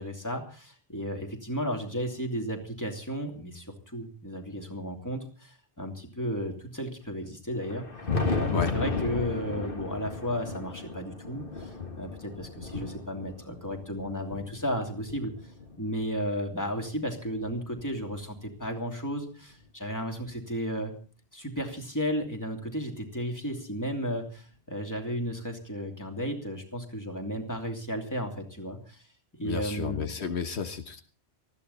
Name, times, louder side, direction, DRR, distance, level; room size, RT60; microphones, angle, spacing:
voice 1, 0.0-3.7 3.9-7.8 8.4-15.3 15.8-20.9 21.3-29.0 29.4-30.3, equal, 15° left, 3 dB, 3.0 m, -34 dB
Thunder, 7.5-16.1 16.8-18.5 19.6-19.7 20.3-20.4 22.2-22.3 23.7-23.8 25.4-25.5, left 4 dB, 55° left, 2.1 m, -35 dB
voice 2, 29.4-31.0, left 6 dB, 80° left, 8 dB, 1.5 m, -32 dB
19.5 x 14.5 x 4.2 m, 0.38 s
omnidirectional pair, 1.1 m